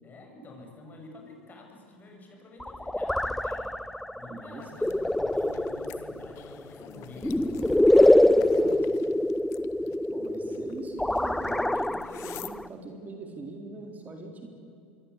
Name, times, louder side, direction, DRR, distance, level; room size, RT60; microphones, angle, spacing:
voice 1, 0.0-3.8 4.2-7.6, left 2 dB, 30° left, 2 dB, 7.5 m, -48 dB
sound 1, 2.6-12.7, left 1 dB, 5° left, 0.6 m, -25 dB
voice 2, 4.3-4.7 8.4-8.9 10.1-14.5, right 3 dB, 25° right, 3 dB, 3.9 m, -42 dB
sound 2, 4.6-12.5, left 13 dB, 50° left, 1.4 m, -49 dB
26.5 x 23.0 x 8.5 m, 2.6 s
hypercardioid pair, 85°, 6 cm